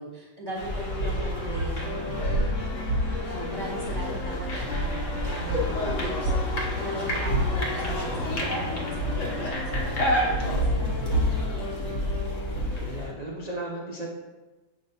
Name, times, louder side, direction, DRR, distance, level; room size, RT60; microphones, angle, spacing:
voice 1, 0.0-2.2 3.3-11.3, right 1 dB, 15° left, -4 dB, 0.9 m, -39 dB
sound 1, 0.6-13.1, equal, 50° left, 1.3 m, -28 dB
Wind instrument woodwind instrument, 1.8-12.7, left 4 dB, 80° left, 1.6 m, -39 dB
voice 2, 12.8-14.1, right 1 dB, 55° right, -4 dB, 0.4 m, -35 dB
7.4 x 5.2 x 2.7 m, 1.2 s
omnidirectional pair, 1.9 m